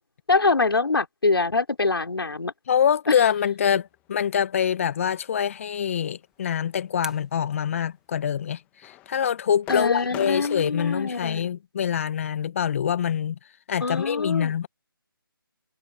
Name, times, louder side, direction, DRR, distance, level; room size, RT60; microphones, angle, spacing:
voice 1, 0.3-2.5 3.1-3.2 9.7-11.5 13.8-14.5, left 3 dB, 80° left, 4.5 m, -24 dB
voice 2, 2.7-13.4 13.7-14.7, left 8 dB, 35° left, 1.5 m, -25 dB
sound 1, 6.0-8.6, right 5 dB, 5° right, 1.8 m, -47 dB
sound 2, 8.8-10.7, left 17 dB, 10° left, 1.2 m, -40 dB
figure-of-eight pair, 160°, 12 cm